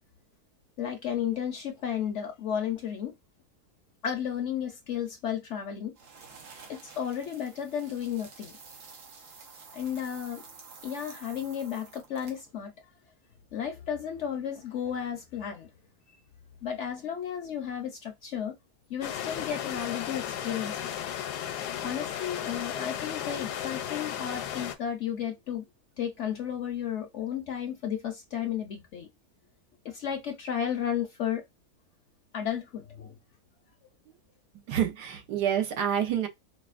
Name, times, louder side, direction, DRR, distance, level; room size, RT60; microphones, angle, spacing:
voice 1, 0.8-3.1 4.0-5.9 6.7-8.5 9.7-10.4 10.8-12.7 13.5-15.7 16.6-18.6 18.9-20.9 21.8-25.6 26.0-29.1 29.8-31.4 32.3-33.2, left 9 dB, 65° left, 0.7 m, -33 dB
sound 1, 6.0-12.5, right 5 dB, 70° right, 1.5 m, -50 dB
sound 2, 19.0-24.7, left 10 dB, 80° left, 1.2 m, -35 dB
voice 2, 34.7-36.3, right 9 dB, 90° right, 1.4 m, -27 dB
4.9 x 2.3 x 2.4 m
omnidirectional pair, 1.7 m